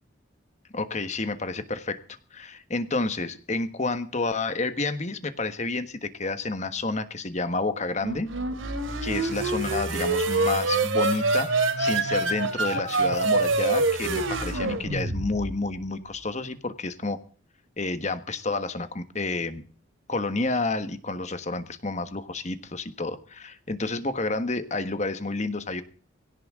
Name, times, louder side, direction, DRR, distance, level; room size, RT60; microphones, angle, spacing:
voice 1, 0.7-2.0 2.3-8.3 9.0-17.2 17.8-19.6 20.1-25.8, left 3 dB, 35° left, 11 dB, 1.4 m, -30 dB
sound 1, 8.0-15.6, right 3 dB, 80° right, 2.5 m, -26 dB
19.0 x 17.5 x 3.7 m, 0.42 s
head